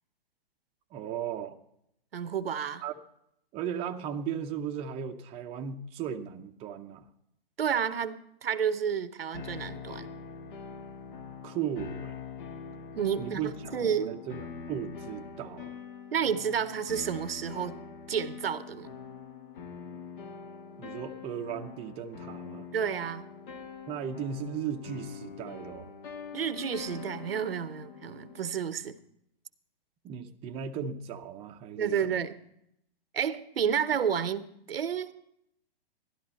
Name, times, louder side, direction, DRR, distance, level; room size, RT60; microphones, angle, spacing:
voice 1, 0.9-1.6 2.8-2.9 3.5-7.1 11.4-12.2 13.2-15.8 20.8-22.7 23.9-25.9 30.0-32.1, right 8 dB, 20° right, 0.6 m, -36 dB
voice 2, 2.1-2.8 7.6-10.1 12.9-13.4 13.7-14.2 16.1-17.7 18.1-19.0 22.7-23.3 26.3-29.0 31.8-32.4 33.1-35.1, right 7 dB, 80° right, 0.8 m, -30 dB
sound 1, 9.3-28.6, left 6 dB, 60° left, 1.4 m, -44 dB
12.5 x 12.0 x 4.2 m
hypercardioid pair, 120°, 29 cm